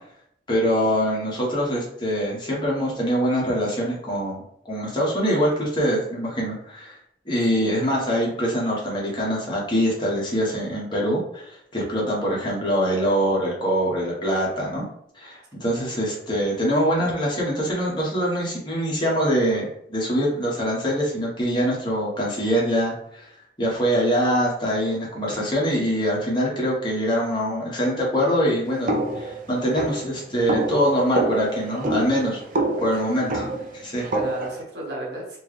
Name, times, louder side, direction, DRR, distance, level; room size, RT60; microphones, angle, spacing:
voice 1, 0.5-7.0 7.3-14.8 15.1-23.3 23.6-32.4 32.8-33.5 33.7-34.0, equal, 25° left, -4 dB, 1.1 m, -24 dB
voice 2, 7.3-7.6 15.7-16.0 32.9-33.0 33.8-35.4, right 1 dB, 65° right, -2 dB, 1.2 m, -36 dB
sound 1, 28.9-34.6, right 2 dB, 50° right, 0.5 m, -27 dB
4.4 x 2.2 x 3.1 m, 0.69 s
head